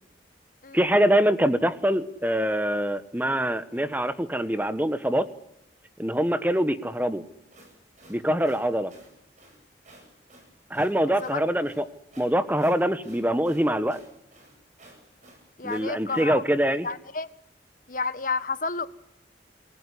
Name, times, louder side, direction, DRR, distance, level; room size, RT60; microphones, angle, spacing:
voice 1, 0.7-5.3 6.0-7.2 8.1-8.9 10.7-11.8 12.2-14.0 15.6-16.9, equal, 10° right, 12 dB, 1.3 m, -24 dB
sound 1, 7.3-16.3, right 1 dB, 40° right, 7.9 m, -54 dB
voice 2, 15.6-16.4 16.8-17.3 17.9-18.9, left 4 dB, 45° left, 13 dB, 1.4 m, -30 dB
28.0 x 19.0 x 9.9 m, 0.88 s
head